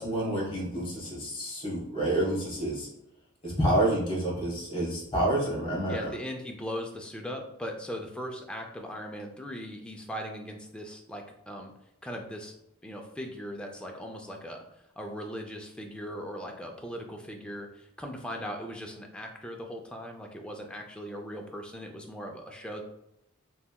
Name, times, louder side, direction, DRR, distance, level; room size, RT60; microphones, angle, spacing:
voice 1, 0.0-2.9 3.4-6.1, right 1 dB, 25° left, -5 dB, 1.3 m, -28 dB
voice 2, 5.9-11.7 12.0-12.5 12.8-14.6 15.0-22.8, equal, 5° left, 1 dB, 0.3 m, -39 dB
3.4 x 2.8 x 2.2 m, 0.82 s
head